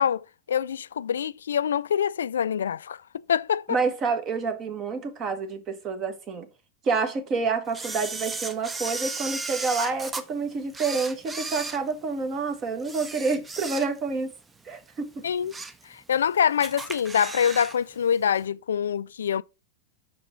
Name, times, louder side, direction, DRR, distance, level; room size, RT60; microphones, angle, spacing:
voice 1, 0.0-3.0 3.3-3.8 15.2-15.5 15.9-19.4, left 8 dB, 65° left, 0.3 m, -25 dB
voice 2, 3.7-6.5 6.8-14.3 14.6-15.2, right 4 dB, 30° right, 1.5 m, -28 dB
Camera, 7.7-10.2 10.7-12.4 12.8-14.2 14.6-14.7 15.2-15.8 16.2-16.3 16.6-17.8 18.0-18.1, right 3 dB, 15° right, 0.7 m, -35 dB
6.1 x 4.8 x 5.2 m
figure-of-eight pair, 90°, 0 cm